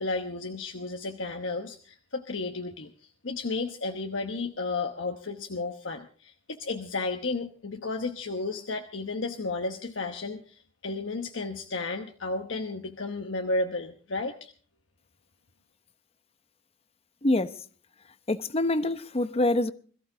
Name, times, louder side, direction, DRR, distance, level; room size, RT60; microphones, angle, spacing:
voice 1, 0.0-14.5, left 3 dB, 85° left, 1.1 m, -33 dB
voice 2, 17.2-17.6 18.3-19.7, left 2 dB, 30° left, 0.8 m, -25 dB
22.0 x 14.5 x 3.9 m
head